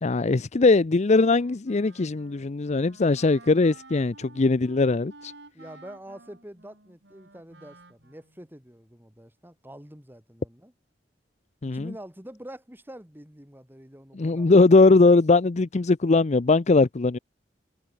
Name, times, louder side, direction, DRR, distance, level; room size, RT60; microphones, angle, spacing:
voice 1, 0.0-5.3 11.6-11.9 14.2-17.2, left 3 dB, 40° left, 0.6 m, -20 dB
Wind instrument woodwind instrument, 1.2-8.5, right 2 dB, 70° right, 5.3 m, -52 dB
voice 2, 5.5-10.7 11.6-14.5, right 1 dB, 10° right, 8.0 m, -45 dB
head